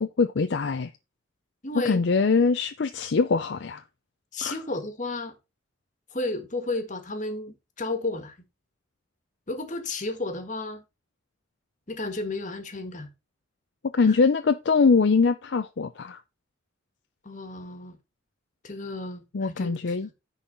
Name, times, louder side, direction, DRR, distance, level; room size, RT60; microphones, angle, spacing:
voice 1, 0.0-0.9 1.9-3.8 4.4-4.5 13.9-16.2 19.3-20.1, left 4 dB, 60° left, 0.5 m, -23 dB
voice 2, 1.6-2.0 4.3-5.3 6.1-8.4 9.5-10.8 11.9-13.1 14.1-14.2 17.2-18.0 18.6-19.9, left 2 dB, 40° left, 1.5 m, -32 dB
9.9 x 4.0 x 5.4 m
head